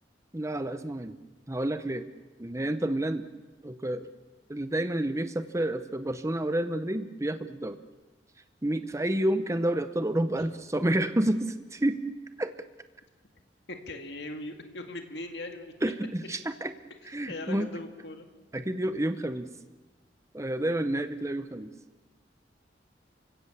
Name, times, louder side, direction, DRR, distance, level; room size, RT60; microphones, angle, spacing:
voice 1, 0.3-1.1 1.5-2.1 2.4-3.3 3.6-4.1 4.5-7.8 8.6-12.0 12.4-12.5 15.8-16.7 17.1-17.7 18.5-19.5 20.3-21.7, right 1 dB, 15° right, 10 dB, 0.7 m, -29 dB
voice 2, 13.7-15.7 17.3-18.3, left 2 dB, 70° left, 5 dB, 1.9 m, -39 dB
29.0 x 16.5 x 7.2 m, 1.2 s
head